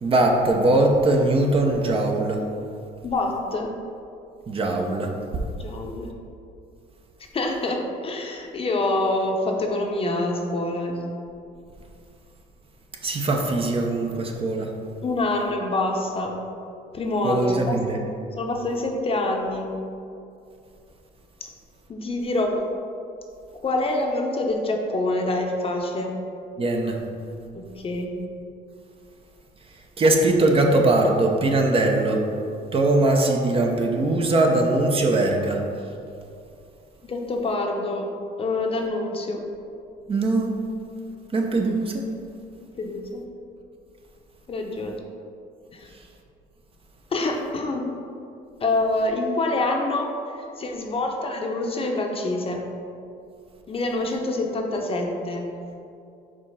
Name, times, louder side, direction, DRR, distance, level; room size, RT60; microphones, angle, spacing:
voice 1, 0.0-2.4 4.5-5.1 13.0-14.7 17.2-18.0 26.6-27.0 30.0-32.2 32.7-35.6 40.1-40.6 41.3-42.0, right 2 dB, 35° right, 2 dB, 0.7 m, -21 dB
voice 2, 3.0-3.7 5.6-6.1 7.3-11.0 15.0-16.3 16.9-17.8 18.4-19.7 21.4-21.5 21.9-22.7 23.6-26.1 27.5-28.1 37.0-38.1 38.4-39.4 42.6-43.2 44.5-45.0 45.7-45.9 47.1-47.9 48.6-50.1 50.6-52.6 53.7-55.5, left 2 dB, 35° left, 2 dB, 0.8 m, -26 dB
5.1 x 3.6 x 5.5 m, 2.5 s
cardioid pair, 110°, 17 cm